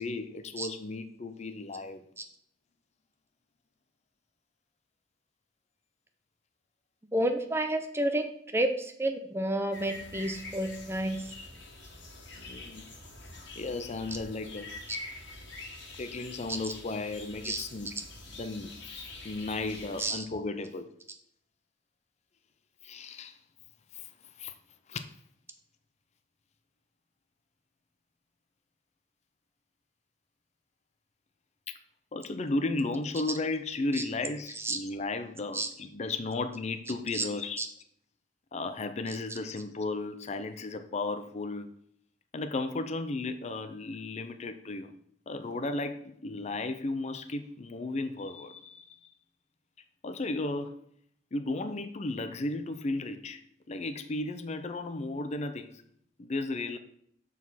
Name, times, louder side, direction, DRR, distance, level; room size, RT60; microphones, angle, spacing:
voice 1, 0.0-2.0 12.4-12.8 13.6-14.7 16.0-17.9 18.3-20.9 22.8-23.4 23.9-24.1 24.4-24.5 24.9-25.1 31.7-31.8 32.1-37.6 38.5-41.7 42.3-44.9 45.3-49.0 50.0-50.8 51.3-53.4 53.7-55.8 56.2-56.8, left 2 dB, 35° left, 8 dB, 0.5 m, -34 dB
voice 2, 7.1-11.2 17.4-17.6 20.0-20.2 34.6-34.8 35.5-35.7 37.1-37.2 37.6-37.7, right 1 dB, 15° right, 6 dB, 0.5 m, -30 dB
sound 1, 9.7-20.1, left 2 dB, 65° left, 1.7 m, -45 dB
7.1 x 4.1 x 5.6 m, 0.67 s
head